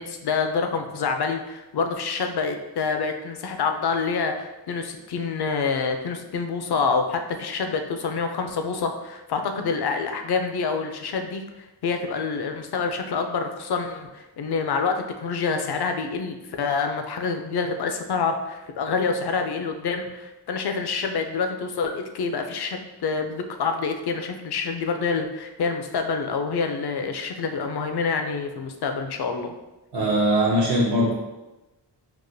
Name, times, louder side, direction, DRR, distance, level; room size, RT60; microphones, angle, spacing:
voice 1, 0.0-29.5, left 5 dB, 65° left, 6 dB, 0.5 m, -27 dB
voice 2, 29.9-31.1, right 1 dB, 70° right, -4 dB, 0.7 m, -21 dB
4.7 x 2.1 x 2.6 m, 1.0 s
wide cardioid pair, 75°, 42 cm